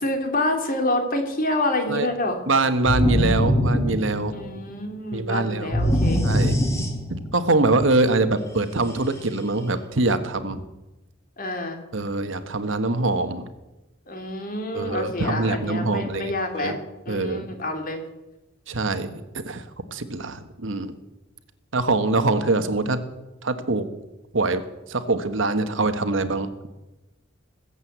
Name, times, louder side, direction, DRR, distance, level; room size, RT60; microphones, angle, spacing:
voice 1, 0.0-2.4 4.3-6.3 11.4-11.8 14.1-16.8 17.0-18.0, left 1 dB, 45° left, 4 dB, 2.8 m, -27 dB
voice 2, 2.5-4.3 5.1-5.8 6.2-6.6 7.1-10.6 11.9-13.5 14.7-16.8 17.1-17.5 18.7-19.6 19.9-20.9 21.7-23.0 23.4-23.9 24.3-24.6 24.9-26.5, right 2 dB, 70° right, 10 dB, 1.3 m, -24 dB
sound 1, 2.9-4.6 5.7-7.4, equal, 15° left, 2.5 m, -22 dB
20.0 x 8.1 x 8.1 m, 1.0 s
head